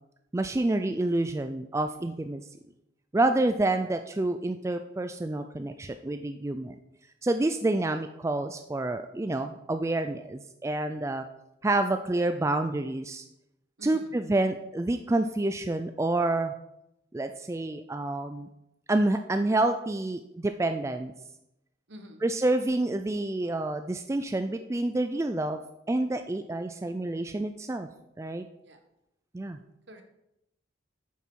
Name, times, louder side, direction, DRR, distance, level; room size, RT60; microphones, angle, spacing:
voice 1, 0.3-2.4 3.1-6.8 7.2-11.3 11.6-13.2 13.8-16.5 17.1-18.5 18.9-21.1 22.2-25.6 25.9-27.9 28.2-28.5 29.3-29.6, right 2 dB, 15° right, 8 dB, 0.3 m, -28 dB
voice 2, 13.8-14.1 21.9-22.2 28.6-28.8 29.9-30.0, equal, 65° right, 5 dB, 1.3 m, -46 dB
9.2 x 7.0 x 4.6 m, 0.85 s
head